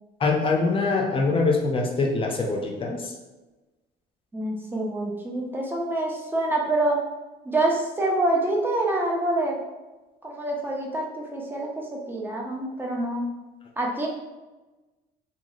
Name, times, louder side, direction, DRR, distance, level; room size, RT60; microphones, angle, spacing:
voice 1, 0.2-3.1, left 3 dB, 30° left, 1 dB, 0.5 m, -24 dB
voice 2, 4.3-7.0 7.4-9.6 10.2-13.3 13.8-14.1, right 2 dB, 10° right, -1 dB, 0.6 m, -26 dB
2.7 x 2.3 x 3.0 m, 1.1 s
cardioid pair, 110°, 17 cm